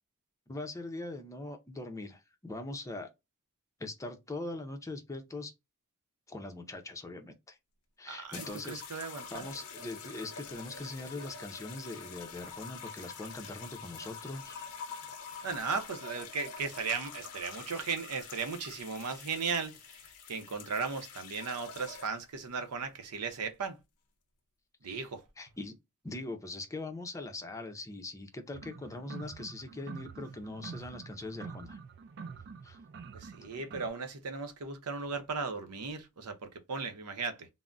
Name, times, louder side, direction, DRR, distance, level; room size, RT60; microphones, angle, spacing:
voice 1, 0.5-3.1 3.8-5.5 6.3-7.6 8.0-14.7 24.9-25.1 25.4-25.7 26.0-31.8 32.6-32.8, left 2 dB, 15° left, 0.5 m, -42 dB
voice 2, 8.1-9.5 15.4-19.8 20.3-23.8 24.8-25.2 33.1-37.5, right 5 dB, 90° right, 0.6 m, -36 dB
sound 1, 8.3-22.3 23.2-23.5, left 5 dB, 75° left, 0.5 m, -46 dB
sound 2, 28.5-33.9, right 5 dB, 50° right, 0.4 m, -46 dB
3.7 x 2.0 x 2.2 m
head